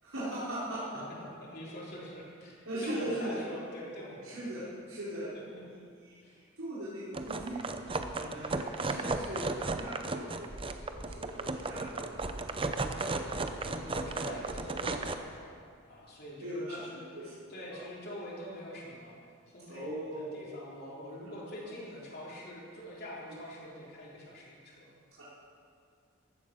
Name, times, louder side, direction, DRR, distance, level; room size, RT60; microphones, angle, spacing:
voice 1, 0.0-1.2 2.7-3.4 4.2-7.6 8.3-10.6 10.9-13.2 16.4-17.3 17.7-17.8 19.7-20.5 21.2-21.3 23.3-23.4 25.2-25.3, right 1 dB, 85° right, -10 dB, 4.2 m, -40 dB
voice 2, 1.4-4.6 6.2-6.4 8.2-8.4 13.6-15.6 15.9-17.0 17.5-19.2 19.5-24.9, equal, 50° left, -5 dB, 3.8 m, -45 dB
sound 1, 7.1-15.1, right 3 dB, 25° right, 0.7 m, -35 dB
15.0 x 12.0 x 6.3 m, 2.2 s
head